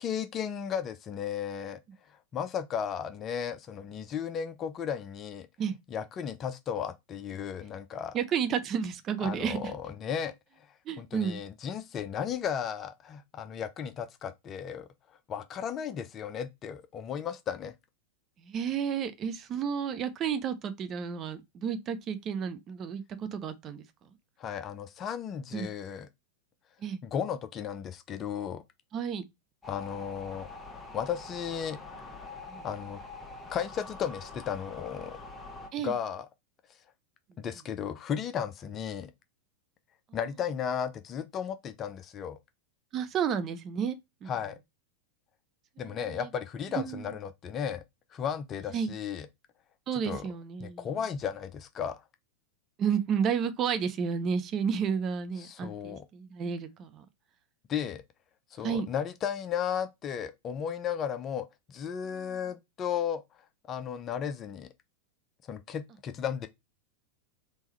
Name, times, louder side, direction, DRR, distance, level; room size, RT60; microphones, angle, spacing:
voice 1, 0.0-1.8 2.3-5.5 5.9-8.2 9.2-10.3 11.0-14.9 15.3-17.7 24.4-26.1 27.0-28.6 29.7-30.5 30.9-31.8 32.2-32.3 32.6-33.0 33.5-35.2 35.8-36.3 37.4-39.1 40.1-42.4 44.3-44.6 45.8-47.8 48.1-49.3 49.9-50.2 50.6-52.0 55.4-56.0 57.7-58.0 58.5-63.2 63.7-64.7 65.5-66.5, left 8 dB, 30° left, 0.6 m, -34 dB
voice 2, 8.1-9.7 10.9-11.4 18.4-23.8 25.5-25.7 26.8-27.0 28.9-29.2 32.5-32.7 35.7-35.9 42.9-44.3 45.8-46.3 46.7-47.1 48.7-48.9 49.9-50.9 52.8-57.0 58.6-58.9 62.1-62.4, right 7 dB, 30° right, 0.7 m, -32 dB
sound 1, 29.6-35.7, left 3 dB, 10° left, 1.3 m, -45 dB
3.6 x 3.0 x 4.3 m
figure-of-eight pair, 90°, 0 cm